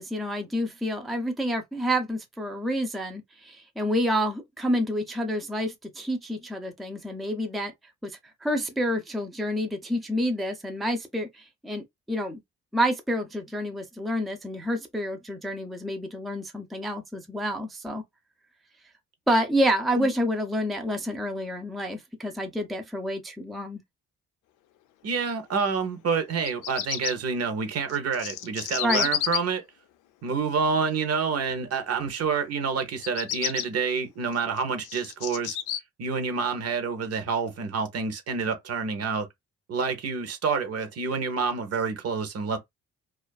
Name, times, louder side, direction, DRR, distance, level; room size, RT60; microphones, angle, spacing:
voice 1, 0.0-7.7 8.0-8.1 8.4-12.4 12.7-18.0 19.3-23.8 28.8-29.1, equal, ahead, 0.4 m, -28 dB
voice 2, 25.0-29.6 30.2-35.6 36.0-39.3 39.7-42.6, right 5 dB, 55° right, 0.8 m, -28 dB
Bird vocalization bird call bird song, 26.3-27.1 27.9-29.4 32.9-33.7 34.3-35.8, left 11 dB, 90° left, 0.5 m, -30 dB
2.4 x 2.4 x 2.2 m
cardioid pair, 90°, 30 cm